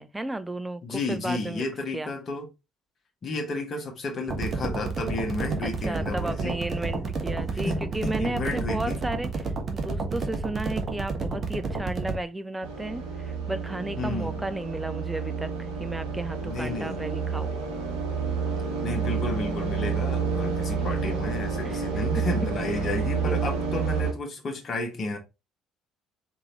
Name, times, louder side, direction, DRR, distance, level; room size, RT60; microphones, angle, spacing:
voice 1, 0.0-1.6 1.9-2.1 5.6-17.5 21.1-21.2 21.6-22.3 23.2-23.6, right 2 dB, 10° right, 0.5 m, -34 dB
voice 2, 0.8-2.5 3.2-6.6 7.6-9.0 14.0-14.5 16.4-17.0 18.8-25.2, left 2 dB, 40° left, 1.6 m, -32 dB
sound 1, 4.3-12.2, right 3 dB, 35° right, 1.2 m, -30 dB
sound 2, 12.6-24.1, right 5 dB, 70° right, 1.4 m, -29 dB
4.7 x 3.6 x 3.0 m
figure-of-eight pair, 55°, 0 cm